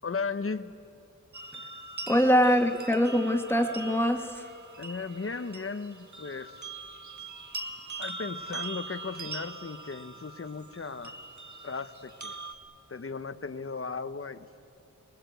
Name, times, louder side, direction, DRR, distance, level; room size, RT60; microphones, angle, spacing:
voice 1, 0.0-0.8 4.8-6.6 8.0-11.2 11.6-12.4 12.9-14.5, left 4 dB, 45° left, 11 dB, 1.0 m, -36 dB
sound 1, 1.3-12.5, right 3 dB, 65° right, 1.9 m, -42 dB
voice 2, 2.1-4.4, equal, 5° left, 4 dB, 1.9 m, -23 dB
27.5 x 21.0 x 8.2 m, 2.5 s
wide cardioid pair, 90°, 31 cm